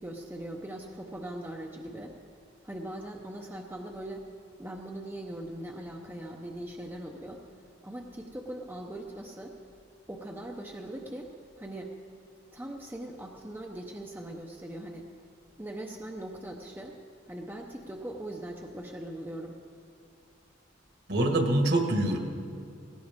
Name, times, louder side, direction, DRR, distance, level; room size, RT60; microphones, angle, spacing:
voice 1, 0.0-2.2 2.6-4.3 4.6-7.4 7.8-9.6 10.1-11.3 11.6-11.9 12.5-15.1 15.6-17.0 17.3-19.6, right 1 dB, 10° right, 1 dB, 0.7 m, -40 dB
voice 2, 21.1-22.2, right 1 dB, 55° right, 3 dB, 1.7 m, -25 dB
18.5 x 16.5 x 3.6 m, 2.4 s
head